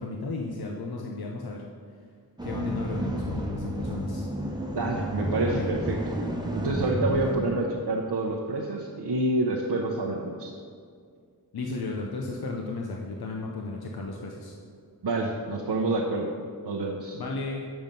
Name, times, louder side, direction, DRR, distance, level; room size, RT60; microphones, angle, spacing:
voice 1, 0.0-1.6 2.4-4.3 5.4-5.7 11.5-14.5 17.1-17.7, left 3 dB, 75° left, 0 dB, 0.7 m, -34 dB
sound 1, 2.4-7.4, equal, 10° right, 0.9 m, -31 dB
voice 2, 4.8-5.8 6.5-10.5 15.0-16.3 16.6-17.2, right 2 dB, 85° right, -1 dB, 0.8 m, -28 dB
7.0 x 5.8 x 5.2 m, 2.2 s
wide cardioid pair, 80°, 38 cm